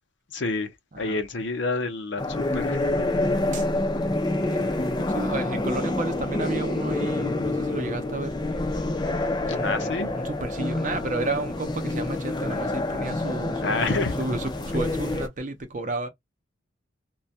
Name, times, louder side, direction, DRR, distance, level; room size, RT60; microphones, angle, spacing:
voice 1, 0.3-0.7 1.0-2.8 9.6-10.1 13.6-14.1, left 3 dB, 65° left, 0.6 m, -28 dB
sound 1, 2.2-15.3, left 2 dB, 20° left, 0.4 m, -27 dB
voice 2, 4.4-8.3 9.5-16.1, right 2 dB, 40° right, 0.6 m, -32 dB
2.2 x 2.1 x 2.6 m
head